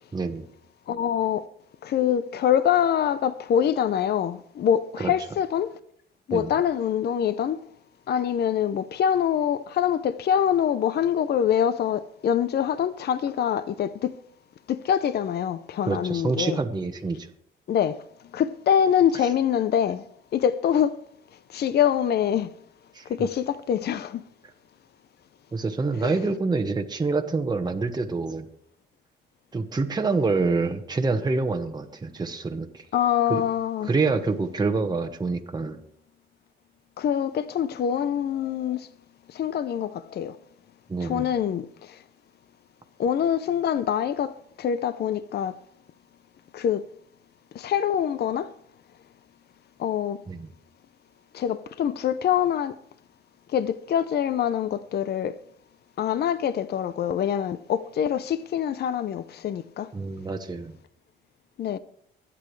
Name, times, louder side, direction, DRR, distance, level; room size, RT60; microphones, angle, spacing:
voice 1, 0.1-0.4 5.0-5.1 6.3-6.5 15.9-17.3 22.9-23.3 25.5-28.5 29.5-32.8 33.3-33.4 33.8-35.8 40.9-41.3 50.3-50.5 59.9-60.8, right 3 dB, 20° right, 1.1 m, -26 dB
voice 2, 0.9-1.5 1.8-5.7 6.3-7.6 8.1-14.2 14.7-16.6 17.7-18.0 18.3-20.1 20.3-21.0 21.5-22.5 23.1-24.2 26.0-26.2 32.9-33.9 37.0-38.9 39.3-40.4 41.0-42.0 43.0-45.6 46.5-46.8 47.5-48.5 49.8-50.2 51.3-52.8 53.5-55.4 56.0-59.9 61.6-61.8, left 9 dB, 55° left, 0.6 m, -25 dB
24.0 x 8.5 x 3.2 m
cardioid pair, 90°, 20 cm